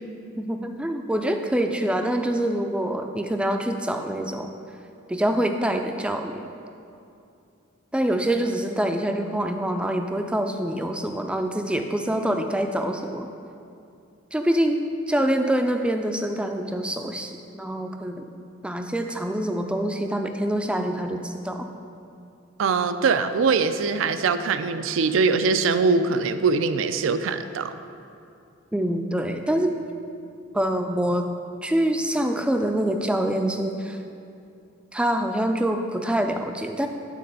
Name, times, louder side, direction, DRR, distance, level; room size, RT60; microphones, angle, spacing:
voice 1, 0.4-4.5 5.1-6.4 7.9-13.3 14.3-14.8 15.1-18.3 18.6-21.6 28.7-29.7 30.5-31.3 31.6-34.0 34.9-36.9, right 1 dB, 5° right, 5 dB, 0.3 m, -25 dB
voice 2, 22.6-27.7, right 4 dB, 75° right, 11 dB, 0.4 m, -22 dB
9.1 x 4.2 x 5.3 m, 2.6 s
head